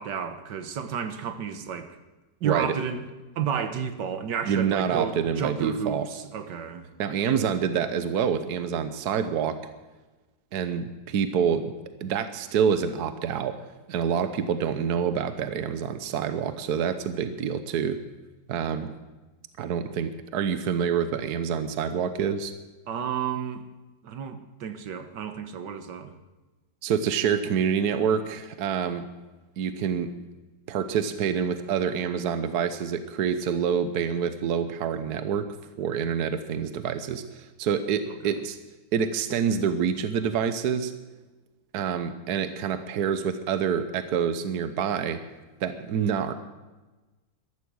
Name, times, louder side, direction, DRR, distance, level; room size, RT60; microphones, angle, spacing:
voice 1, 0.0-1.9 2.4-3.0 3.4-6.9 7.2-7.4 22.9-23.6 24.0-26.2 38.2-38.4, right 7 dB, 90° right, 9 dB, 1.8 m, -31 dB
voice 2, 2.4-2.7 4.4-6.1 7.0-9.6 10.5-11.7 12.0-13.6 13.9-18.0 18.5-18.9 19.6-22.5 26.8-29.1 29.6-30.1 30.7-35.5 35.8-38.6 38.9-40.9 41.7-45.2 45.6-46.3, right 7 dB, 70° right, 10 dB, 1.4 m, -27 dB
14.0 x 13.0 x 6.3 m, 1.2 s
omnidirectional pair, 1.8 m